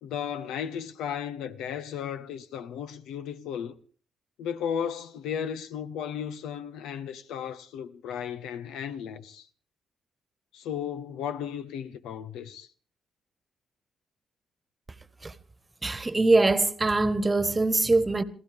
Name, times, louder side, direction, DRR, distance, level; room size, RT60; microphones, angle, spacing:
voice 1, 0.0-3.8 4.4-9.5 10.5-12.7, left 8 dB, 85° left, 1.0 m, -35 dB
voice 2, 15.8-18.2, right 2 dB, 25° right, 1.3 m, -23 dB
26.5 x 15.5 x 3.5 m
supercardioid pair, 65°, 0 cm